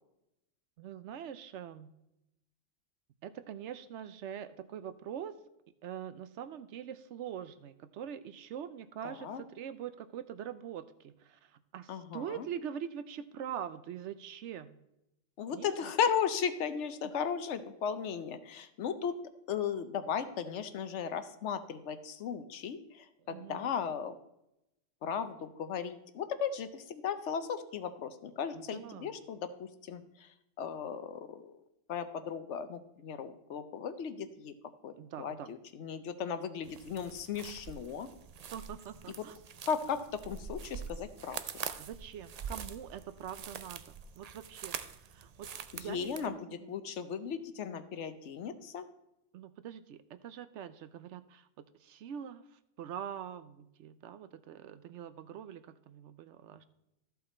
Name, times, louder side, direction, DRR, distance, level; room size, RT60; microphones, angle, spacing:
voice 1, 0.8-1.9 3.2-5.3 5.8-14.8 15.5-15.9 23.2-23.7 28.5-29.1 35.0-35.5 38.5-39.3 41.8-44.8 45.1-46.7 49.3-52.4 52.8-56.7, right 9 dB, 70° right, 13 dB, 0.8 m, -44 dB
voice 2, 9.0-9.4 11.9-12.5 15.4-19.2 19.5-24.2 25.0-31.6 31.9-34.5 34.8-38.1 39.1-39.2 39.7-41.4 45.7-46.3 46.7-48.9, left 7 dB, 70° left, 11 dB, 1.0 m, -36 dB
sound 1, 36.6-46.3, right 7 dB, 85° right, 0.3 m, -45 dB
13.0 x 5.7 x 4.2 m, 0.86 s
omnidirectional pair, 1.3 m